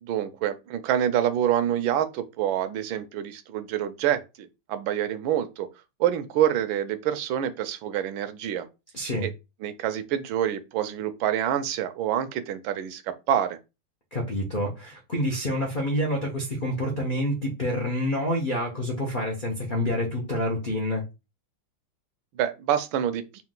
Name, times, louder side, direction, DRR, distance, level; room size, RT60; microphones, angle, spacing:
voice 1, 0.0-5.7 6.0-8.7 9.2-9.3 9.6-13.6 22.3-23.2, right 10 dB, 75° right, 1.3 m, -27 dB
voice 2, 8.9-9.3 14.1-21.0, left 1 dB, 70° left, 0.4 m, -27 dB
4.5 x 2.4 x 3.7 m
omnidirectional pair, 2.3 m